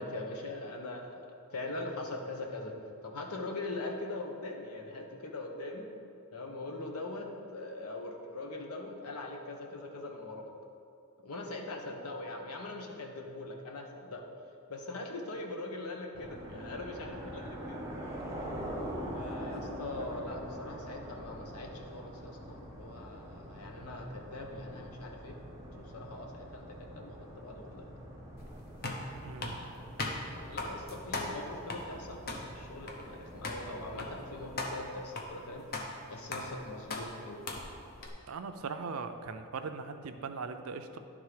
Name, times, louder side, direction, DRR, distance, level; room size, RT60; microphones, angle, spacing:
voice 1, 0.0-2.8 3.0-5.9 6.3-10.5 11.2-14.3 14.7-17.8 19.1-25.4 25.7-27.9 30.3-37.5, left 2 dB, 85° left, 2 dB, 1.0 m, -42 dB
sound 1, 16.1-34.7, equal, 15° right, 0.9 m, -44 dB
sound 2, 28.4-38.1, left 2 dB, 45° left, 0.8 m, -40 dB
voice 2, 29.2-29.6 38.3-41.0, right 4 dB, 65° right, 8 dB, 0.5 m, -39 dB
10.5 x 3.7 x 4.8 m, 2.5 s
head